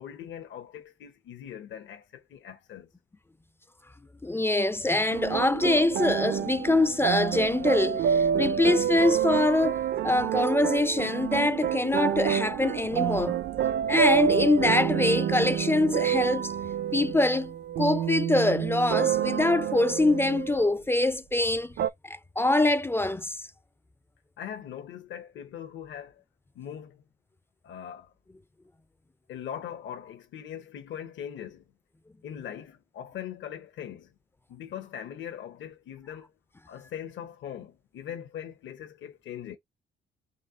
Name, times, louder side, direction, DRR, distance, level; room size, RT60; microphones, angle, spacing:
voice 1, 0.0-2.9 24.4-26.2 26.5-27.0 27.6-28.1 29.3-31.6 32.2-34.1 34.5-36.3 36.7-39.6, left 9 dB, 70° left, 1.0 m, -41 dB
voice 2, 4.2-9.8 10.0-13.4 13.9-16.5 16.9-21.7 22.0-23.4, left 2 dB, 10° left, 0.4 m, -24 dB
sound 1, 5.1-20.7 21.8-21.9, right 9 dB, 60° right, 0.6 m, -28 dB
4.2 x 2.7 x 3.6 m
cardioid pair, 90°, 20 cm